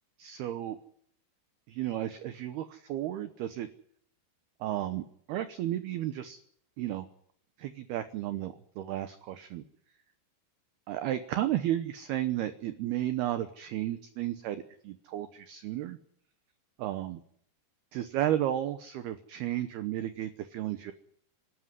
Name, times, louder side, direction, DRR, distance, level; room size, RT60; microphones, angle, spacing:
voice 1, 0.2-0.8 1.7-3.7 4.6-6.4 6.8-7.1 7.6-9.6 10.9-16.0 16.8-17.2 17.9-20.9, right 12 dB, 75° right, 10 dB, 2.4 m, -33 dB
25.5 x 13.0 x 9.8 m, 0.65 s
omnidirectional pair, 5.8 m